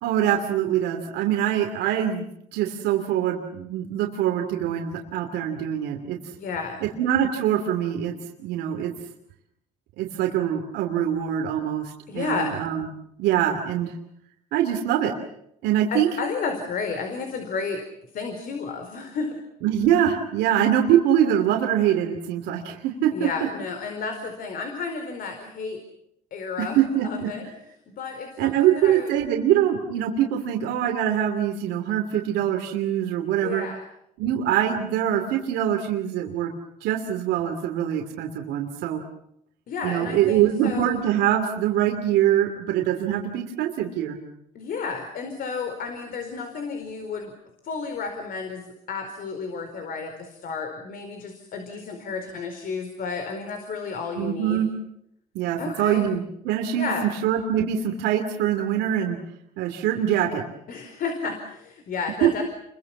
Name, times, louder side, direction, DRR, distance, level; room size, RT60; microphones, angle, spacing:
voice 1, 0.0-6.2 6.8-8.9 10.0-12.9 13.2-13.9 14.5-15.1 15.6-16.1 19.6-23.3 26.6-27.3 28.4-33.6 34.2-36.5 36.8-39.0 39.8-44.2 54.2-54.7 55.3-59.2 59.6-60.4 62.2-62.4, right 10 dB, 90° right, 3 dB, 2.9 m, -24 dB
voice 2, 6.4-6.8 12.1-12.5 15.9-17.8 18.1-19.4 23.1-25.8 26.3-27.4 27.9-29.1 33.4-33.8 39.7-41.0 44.5-47.3 47.6-54.6 55.6-56.0 56.8-57.1 60.7-62.4, left 5 dB, 60° left, 5 dB, 4.7 m, -32 dB
29.5 x 23.5 x 7.3 m, 0.76 s
cardioid pair, 110°, 17 cm